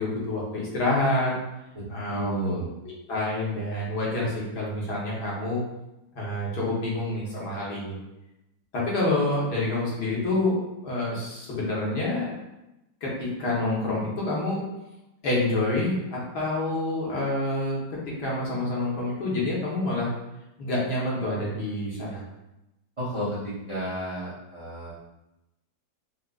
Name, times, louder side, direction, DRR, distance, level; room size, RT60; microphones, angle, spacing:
voice 1, 0.0-1.3 1.9-2.5 3.1-5.6 6.1-8.0 8.7-10.5 10.8-12.3 13.0-14.6 15.2-17.8 18.2-20.1 20.6-22.2, left 2 dB, 65° left, -5 dB, 1.4 m, -27 dB
voice 2, 1.7-2.7 23.0-24.9, right 1 dB, 50° right, -10 dB, 0.3 m, -32 dB
3.8 x 2.7 x 2.3 m, 0.94 s
omnidirectional pair, 2.0 m